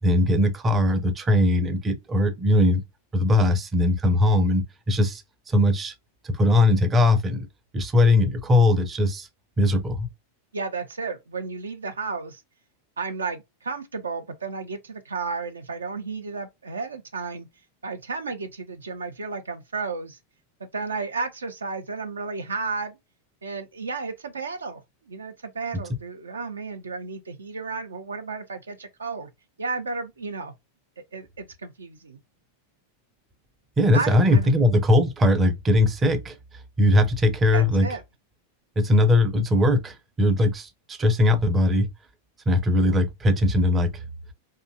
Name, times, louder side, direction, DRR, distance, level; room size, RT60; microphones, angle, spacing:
voice 1, 0.0-2.8 3.1-5.2 5.5-5.9 6.2-7.5 7.7-9.3 9.6-10.1 33.8-36.4 36.8-37.9 38.8-41.9 42.5-44.0, left 1 dB, 20° right, 0.5 m, -20 dB
voice 2, 10.5-12.4 13.0-17.5 17.8-20.2 20.7-23.0 23.4-24.8 25.1-29.3 29.6-30.5 31.1-32.2 33.9-34.5 37.5-38.0, right 4 dB, 75° right, 0.4 m, -33 dB
2.6 x 2.2 x 2.5 m
figure-of-eight pair, 90°, 0 cm